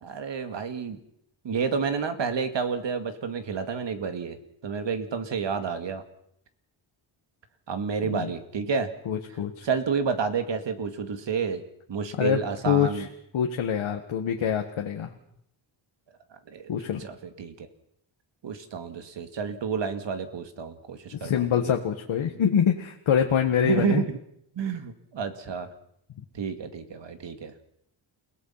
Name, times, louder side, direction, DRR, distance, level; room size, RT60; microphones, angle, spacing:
voice 1, 0.0-1.0 1.4-4.4 4.6-6.0 7.7-8.9 9.6-11.6 11.9-13.1 16.3-16.7 17.0-17.7 18.4-21.8 23.6-24.2 24.6-25.7 26.3-27.5, right 6 dB, 65° right, 8 dB, 2.2 m, -30 dB
voice 2, 9.1-9.7 12.2-12.4 12.7-13.1 13.3-15.1 16.7-17.0 21.1-24.0, left 8 dB, 90° left, 3 dB, 1.7 m, -25 dB
29.0 x 18.0 x 5.8 m, 0.74 s
wide cardioid pair, 140°, 47 cm